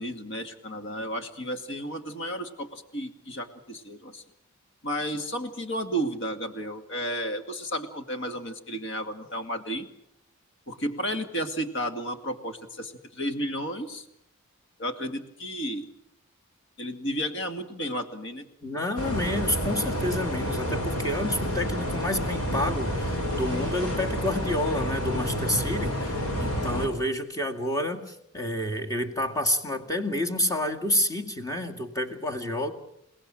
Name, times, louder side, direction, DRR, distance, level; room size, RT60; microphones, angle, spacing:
voice 1, 0.0-4.2 4.8-9.9 10.7-14.1 14.8-15.9 16.8-18.5, equal, 55° left, 8 dB, 2.3 m, -32 dB
voice 2, 18.6-32.7, left 1 dB, 15° left, 4 dB, 2.2 m, -29 dB
sound 1, 19.0-26.9, equal, 85° left, 6.2 m, -29 dB
28.5 x 18.0 x 8.9 m, 0.78 s
head